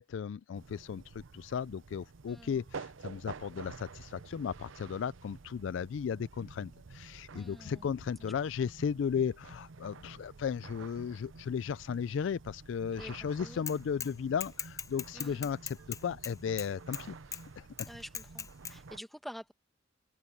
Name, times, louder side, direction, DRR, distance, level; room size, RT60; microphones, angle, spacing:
voice 1, 0.0-17.1 17.6-17.7, left 7 dB, 70° left, 0.3 m, -35 dB
sound 1, 0.5-19.0, right 4 dB, 75° right, 0.7 m, -50 dB
voice 2, 2.3-2.6 7.3-7.9 13.0-13.1 13.4-13.6 15.1-15.5 17.8-19.5, equal, ahead, 1.6 m, -48 dB
Bicycle / Mechanisms, 13.7-14.1 14.4-17.0 17.3-17.4 17.8-18.7, left 7 dB, 15° left, 0.5 m, -39 dB
open air
head